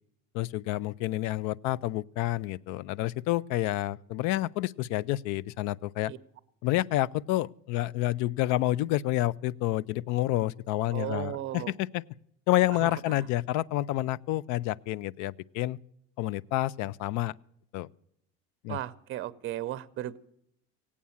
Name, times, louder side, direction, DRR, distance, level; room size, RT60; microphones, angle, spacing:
voice 1, 0.3-6.1 6.6-12.0 12.5-15.8 16.2-17.3 17.7-17.9 18.6-18.8, left 16 dB, 70° left, 0.5 m, -29 dB
voice 2, 10.9-11.7 12.8-13.2 18.7-20.2, right 13 dB, 40° right, 0.6 m, -36 dB
17.5 x 8.5 x 7.1 m
cardioid pair, 135°, 30 cm